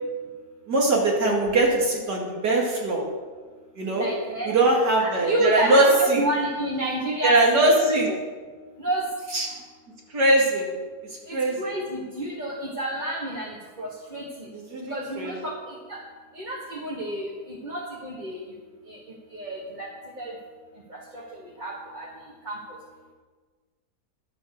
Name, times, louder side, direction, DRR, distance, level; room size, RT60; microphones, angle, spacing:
voice 1, 0.7-3.0 3.8-4.1 4.5-6.2 7.2-8.1 9.3-9.5 10.1-10.7 11.3-11.6 14.7-15.3, right 2 dB, 75° right, -2 dB, 2.9 m, -21 dB
voice 2, 3.9-4.6 5.0-7.6 8.1-8.2 8.8-9.0 11.3-14.5 14.9-16.0 16.3-18.4 18.9-19.0 19.3-19.9 20.2-20.3 20.9-22.1 22.4-22.6, right 1 dB, 30° right, -4 dB, 1.5 m, -30 dB
11.5 x 7.5 x 6.5 m, 1.4 s
omnidirectional pair, 1.8 m